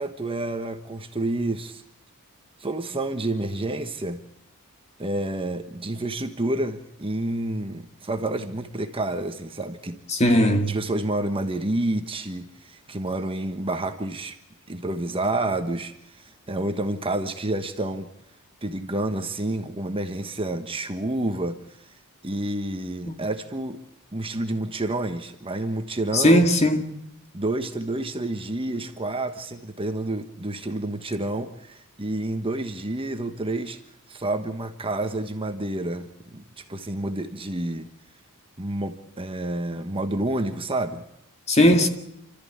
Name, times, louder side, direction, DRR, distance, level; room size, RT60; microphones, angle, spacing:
voice 1, 0.0-1.8 2.6-4.2 5.0-10.0 10.6-14.3 14.7-18.1 18.6-21.6 22.2-23.8 24.1-26.4 27.3-33.8 34.1-37.9 38.6-41.1, right 2 dB, 25° right, 1.4 m, -29 dB
voice 2, 10.2-10.7 26.1-26.9 41.5-41.9, equal, 30° left, 2.1 m, -18 dB
28.5 x 13.5 x 8.8 m
head